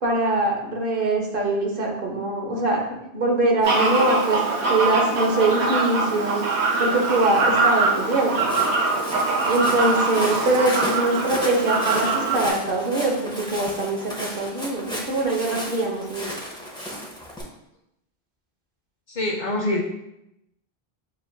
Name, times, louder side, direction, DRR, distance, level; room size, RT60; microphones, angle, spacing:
voice 1, 0.0-4.4 4.7-6.4 6.8-8.4 9.4-16.3, right 2 dB, 60° right, 0 dB, 0.9 m, -23 dB
Fowl, 3.6-12.5, right 3 dB, 90° right, 1.0 m, -23 dB
Walk footsteps, 8.3-17.4, equal, 5° left, 0.5 m, -34 dB
voice 2, 19.1-19.9, left 2 dB, 55° left, -1 dB, 0.6 m, -25 dB
6.6 x 2.4 x 2.2 m, 0.84 s
omnidirectional pair, 1.0 m